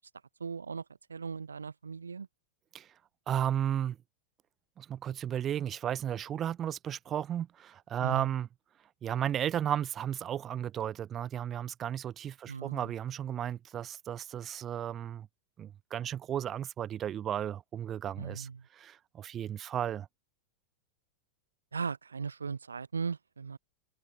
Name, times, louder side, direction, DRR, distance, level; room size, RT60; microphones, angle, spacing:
voice 1, 0.4-0.8 1.1-2.3 8.0-8.3 12.5-12.9 18.2-18.7 21.7-23.6, right 5 dB, 75° right, 6.2 m, -38 dB
voice 2, 3.3-4.0 4.8-8.5 9.0-15.3 15.6-18.5 18.8-20.1, right 10 dB, 25° right, 5.3 m, -34 dB
open air
figure-of-eight pair, 90°, 0 cm